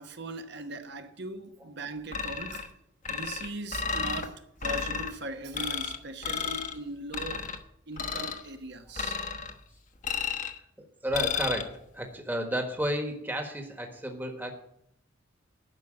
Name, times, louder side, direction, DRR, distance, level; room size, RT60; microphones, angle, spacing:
voice 1, 0.0-2.7 3.1-7.5 7.9-9.2, right 2 dB, 55° right, 1.1 m, -39 dB
sound 1, 2.1-2.7 3.0-4.3 4.6-5.1 5.5-6.0 6.2-6.7 7.1-7.6 8.0-8.4 9.0-9.5 10.0-10.6 11.1-11.6, left 6 dB, 40° left, 1.1 m, -32 dB
voice 2, 11.0-14.5, equal, 10° right, 1.3 m, -32 dB
11.0 x 5.8 x 8.9 m
head